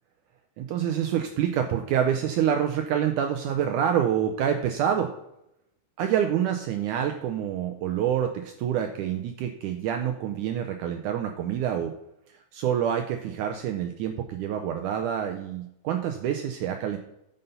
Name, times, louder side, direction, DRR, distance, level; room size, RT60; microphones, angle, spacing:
voice 1, 0.6-5.1 6.0-11.9 12.5-17.0, right 9 dB, 80° right, 5 dB, 1.9 m, -27 dB
9.4 x 5.4 x 5.6 m, 0.82 s
omnidirectional pair, 4.1 m